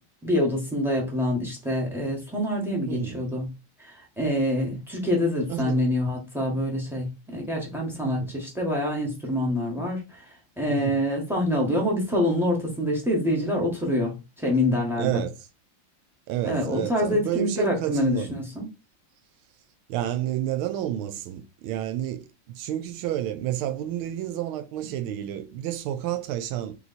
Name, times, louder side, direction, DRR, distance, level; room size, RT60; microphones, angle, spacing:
voice 1, 0.2-3.5 3.8-10.2 10.6-15.2 16.4-18.2 18.5-18.7, left 1 dB, ahead, 0.7 m, -26 dB
voice 2, 2.9-3.2 5.5-5.9 8.0-8.3 10.7-11.0 15.0-15.3 16.3-18.4 19.9-26.8, right 12 dB, 90° right, 1.5 m, -30 dB
3.3 x 3.1 x 4.0 m
omnidirectional pair, 2.3 m